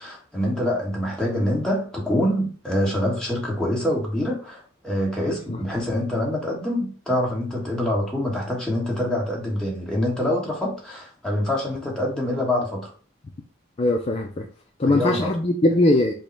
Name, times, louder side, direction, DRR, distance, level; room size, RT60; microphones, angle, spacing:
voice 1, 0.0-12.9 14.8-15.3, left 1 dB, 5° left, 1.3 m, -25 dB
voice 2, 13.8-14.5 14.8-16.1, left 2 dB, 30° left, 0.4 m, -20 dB
5.3 x 2.1 x 4.4 m
head